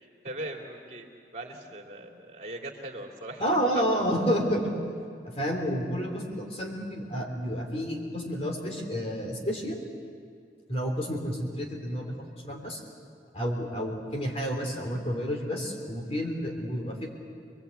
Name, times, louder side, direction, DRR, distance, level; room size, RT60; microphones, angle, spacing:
voice 1, 0.2-1.1 1.3-3.4 3.7-3.8, right 2 dB, 40° right, 1 dB, 3.0 m, -39 dB
voice 2, 3.4-4.7 5.2-9.8 10.7-12.2 12.4-12.8 13.3-17.1, equal, 35° left, 1 dB, 3.2 m, -30 dB
26.5 x 21.5 x 8.4 m, 2.3 s
head